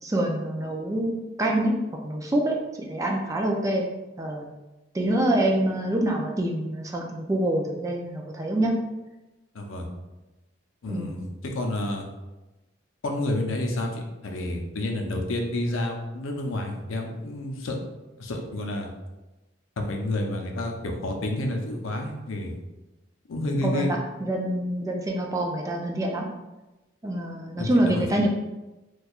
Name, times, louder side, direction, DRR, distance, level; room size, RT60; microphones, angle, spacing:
voice 1, 0.0-1.7 2.0-3.9 4.2-4.5 4.9-8.7 10.9-11.1 23.6-26.3 27.0-28.3, right 1 dB, 15° right, 0 dB, 0.3 m, -26 dB
voice 2, 9.5-9.9 10.8-12.1 13.0-17.8 18.2-18.9 19.8-22.6 23.3-23.9 27.6-28.0, left 1 dB, 90° left, 2 dB, 0.6 m, -29 dB
4.3 x 2.3 x 2.4 m, 1.1 s
head